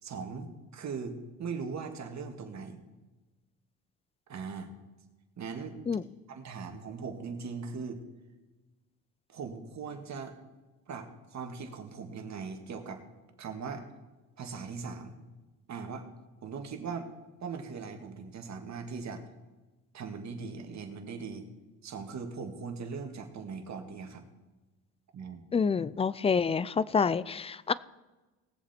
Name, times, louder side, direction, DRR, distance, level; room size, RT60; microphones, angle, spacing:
voice 1, 0.0-2.8 4.3-4.7 5.4-5.8 6.3-8.0 9.3-10.4 10.9-13.0 13.4-13.8 14.4-15.2 15.7-16.1 16.4-17.1 17.4-19.2 19.9-21.5 21.8-24.2 25.1-25.4, right 5 dB, 50° right, 4 dB, 2.1 m, -39 dB
voice 2, 25.5-27.7, left 5 dB, 15° left, 19 dB, 0.4 m, -27 dB
19.5 x 7.3 x 4.4 m, 1.2 s
supercardioid pair, 80°, 36 cm